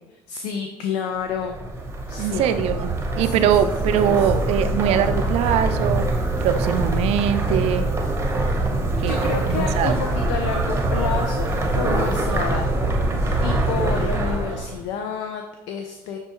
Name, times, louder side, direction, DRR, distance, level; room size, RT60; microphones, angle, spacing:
voice 1, 0.3-1.6 2.1-2.5 3.2-3.7 4.1-4.4 9.0-11.5 11.8-12.7 13.4-16.2, left 6 dB, 85° left, 4 dB, 0.4 m, -29 dB
sound 1, 1.3-14.8, right 2 dB, 20° right, 0.7 m, -23 dB
voice 2, 2.2-7.9 9.0-10.0, right 9 dB, 70° right, 9 dB, 0.4 m, -22 dB
6.2 x 2.2 x 3.0 m, 1.1 s
supercardioid pair, 80°, 11 cm